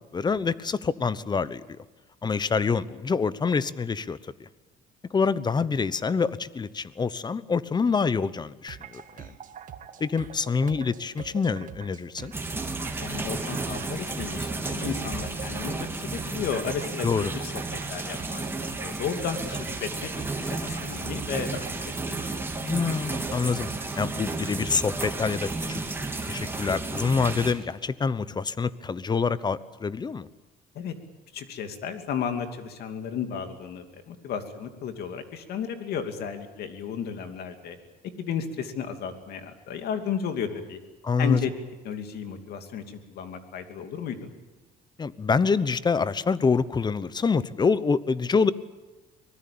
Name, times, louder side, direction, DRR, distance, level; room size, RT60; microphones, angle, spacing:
voice 1, 0.0-1.6 2.2-4.5 5.1-9.0 10.0-12.3 17.0-17.3 22.6-23.7 23.9-25.8 26.2-30.3 41.0-41.4 45.0-48.5, left 5 dB, 25° left, 17 dB, 1.0 m, -26 dB
sound 1, 8.7-24.6, right 7 dB, 50° right, 1.7 m, -44 dB
sound 2, 12.3-27.5, right 3 dB, 15° right, 3.2 m, -32 dB
voice 2, 13.0-15.8 16.1-18.4 18.8-20.1 20.5-21.7 22.1-22.4 30.7-30.9 31.3-37.8 38.2-40.8 41.2-41.5 41.8-44.3, left 7 dB, 70° left, 7 dB, 2.8 m, -33 dB
24.5 x 19.5 x 8.7 m, 1.2 s
cardioid pair, 110°, 17 cm